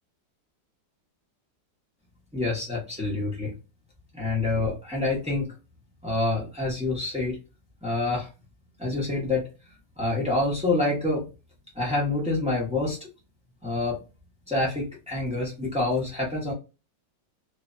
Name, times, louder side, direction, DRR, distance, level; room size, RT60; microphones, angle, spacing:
voice 1, 2.3-3.5 4.1-5.5 6.0-7.4 7.8-8.3 8.8-9.5 10.0-11.3 11.7-13.0 13.6-14.0 14.5-16.5, left 2 dB, 10° right, -4 dB, 0.4 m, -27 dB
3.2 x 2.1 x 2.4 m, 0.30 s
omnidirectional pair, 1.9 m